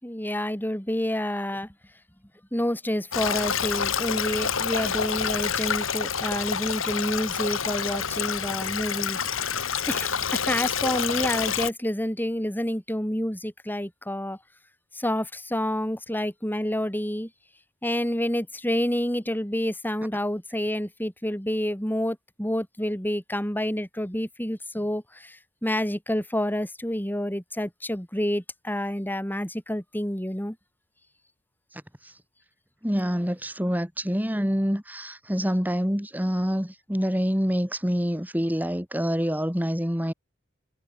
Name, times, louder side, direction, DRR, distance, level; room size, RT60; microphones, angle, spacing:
voice 1, 0.0-1.7 2.5-9.2 9.8-14.4 14.9-17.3 17.8-25.4 25.6-30.5, left 1 dB, 10° left, 7.9 m, -28 dB
Stream, 3.1-11.7, left 7 dB, 80° left, 3.3 m, -28 dB
voice 2, 31.7-32.1 32.8-40.1, equal, 10° right, 6.9 m, -26 dB
head